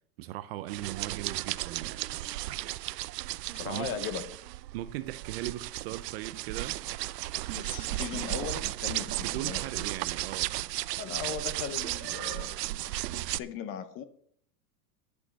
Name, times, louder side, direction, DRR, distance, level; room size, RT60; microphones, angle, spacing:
voice 1, 0.2-2.0 3.6-4.0 4.7-6.8 9.2-10.7, right 15 dB, 40° right, 0.5 m, -39 dB
sound 1, 0.7-13.4, right 17 dB, 90° right, 0.6 m, -35 dB
voice 2, 3.5-4.3 7.5-9.8 11.0-14.0, left 8 dB, 25° left, 0.8 m, -38 dB
11.0 x 6.4 x 7.7 m
supercardioid pair, 155°, 48 cm